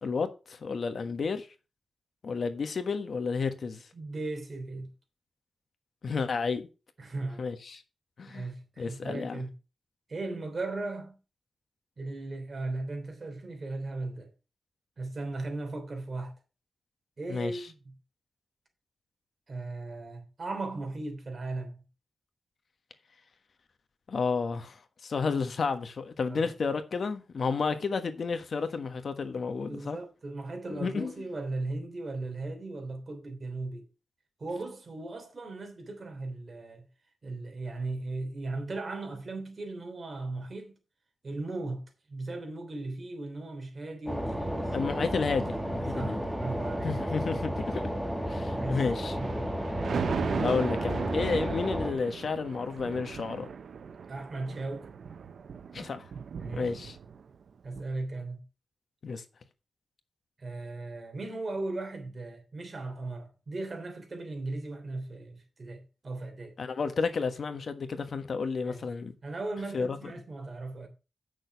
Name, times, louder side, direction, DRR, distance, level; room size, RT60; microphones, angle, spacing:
voice 1, 0.0-1.5 2.2-3.9 6.0-6.7 7.4-7.8 8.2-8.5 8.8-9.4 17.3-17.7 24.1-30.0 30.7-31.1 44.7-46.2 46.8-47.9 48.3-49.2 50.4-53.5 55.7-56.1 56.5-57.0 59.0-59.2 66.6-69.1 69.7-70.0, left 5 dB, 65° left, 1.3 m, -31 dB
voice 2, 3.9-4.9 7.0-7.5 8.3-9.5 10.1-11.2 12.0-14.3 15.0-16.3 17.2-17.9 19.5-21.8 26.3-26.5 29.6-33.9 34.4-36.9 37.2-40.8 41.2-41.8 42.1-44.8 45.9-47.0 48.5-48.8 49.2-49.5 54.1-54.9 56.4-56.7 57.6-58.4 60.4-66.5 68.6-68.8 69.2-70.9, right 2 dB, 45° right, 3.1 m, -37 dB
sound 1, 44.1-51.9, equal, 5° right, 1.4 m, -32 dB
Thunder, 49.0-57.4 57.8-57.9, right 6 dB, 75° right, 0.6 m, -37 dB
8.9 x 6.5 x 5.8 m
wide cardioid pair, 105°, 0 cm